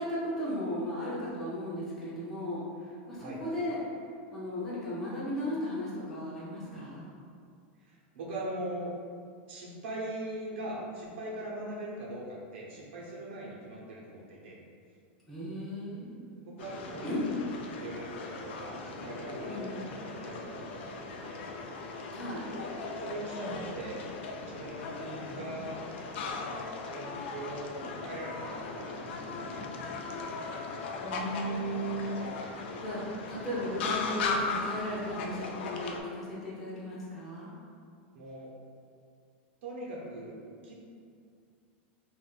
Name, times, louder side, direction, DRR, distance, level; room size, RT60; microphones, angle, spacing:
voice 1, 0.0-2.6 3.1-3.8 4.3-7.1 15.3-16.3 17.0-17.3 19.5-19.8 22.1-22.4 23.3-23.7 31.0-32.4 32.8-33.0 33.3-37.5, equal, ahead, -11 dB, 0.7 m, -36 dB
voice 2, 7.8-8.9 9.5-14.6 16.4-17.3 17.7-19.7 20.0-21.5 23.0-24.1 24.4-25.8 26.2-27.7 28.0-30.1 32.1-32.3 38.1-38.5 39.6-40.3 40.6-40.7, right 1 dB, 70° right, -4 dB, 0.9 m, -41 dB
sound 1, 16.6-36.0, left 4 dB, 70° left, 0.4 m, -38 dB
5.5 x 2.5 x 2.4 m, 2.3 s
supercardioid pair, 160°, 6 cm